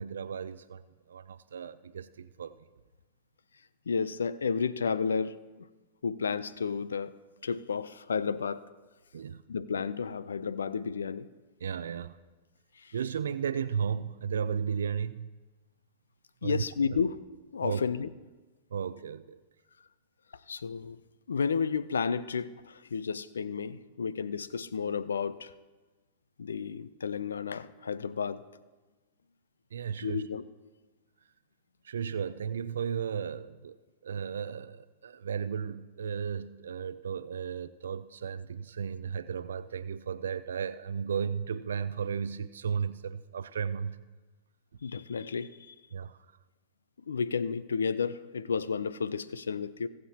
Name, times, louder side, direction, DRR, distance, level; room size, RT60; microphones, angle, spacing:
voice 1, 0.0-2.5 9.1-9.4 11.6-12.2 12.9-15.3 16.4-16.6 16.9-17.0 17.6-17.8 18.7-19.4 29.7-30.3 31.8-33.8 34.0-44.0 45.9-46.2, right 7 dB, 85° right, 12 dB, 0.4 m, -34 dB
voice 2, 3.9-5.7 6.0-7.1 7.4-8.6 9.5-11.3 12.8-12.9 16.4-17.2 17.5-18.1 20.5-21.0 21.3-25.5 26.4-28.4 30.0-30.4 44.8-45.8 47.1-49.9, left 5 dB, 90° left, 16 dB, 0.4 m, -32 dB
22.0 x 7.4 x 2.9 m, 1.2 s
hypercardioid pair, 110°, 0 cm